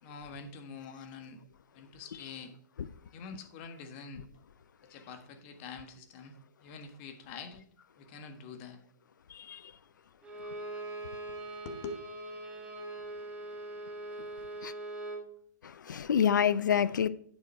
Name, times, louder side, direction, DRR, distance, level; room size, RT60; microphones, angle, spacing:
voice 1, 0.0-1.4 1.7-2.5 3.1-4.2 4.9-6.4 6.6-7.6 8.0-8.8 11.3-12.0, left 4 dB, 35° left, 1.4 m, -45 dB
voice 2, 9.3-9.7 14.6-14.7 15.6-17.1, left 8 dB, 80° left, 0.6 m, -28 dB
Bowed string instrument, 10.2-15.3, right 2 dB, 10° right, 1.6 m, -42 dB
8.6 x 6.7 x 4.2 m
hypercardioid pair, 135°, 10 cm